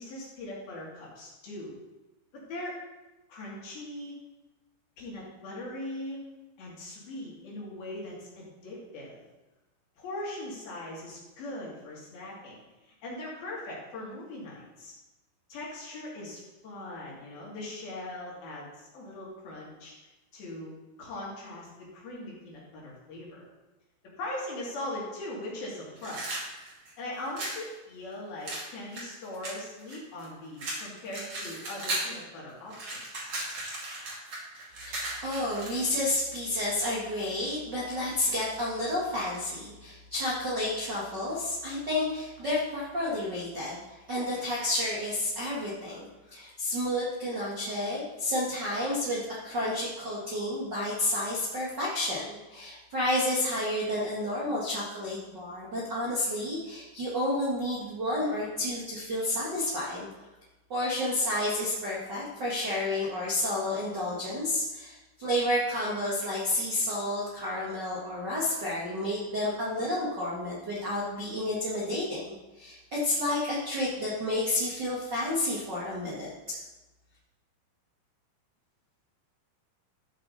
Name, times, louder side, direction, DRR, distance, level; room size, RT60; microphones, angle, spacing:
voice 1, 0.0-1.7 2.3-2.8 3.3-4.2 5.0-6.2 6.6-9.2 10.0-14.9 15.5-19.9 20.3-20.7 21.0-23.4 24.0-26.5 27.0-33.3, left 1 dB, 55° left, -5 dB, 4.4 m, -40 dB
sound 1, 26.0-27.6 28.5-30.3 30.6-32.2 32.5-36.0, right 2 dB, 40° right, 3.2 m, -36 dB
voice 2, 34.8-43.8 44.1-60.1 60.7-76.6, left 1 dB, 80° right, -7 dB, 0.9 m, -30 dB
14.5 x 6.3 x 4.1 m, 1.1 s
omnidirectional pair, 5.4 m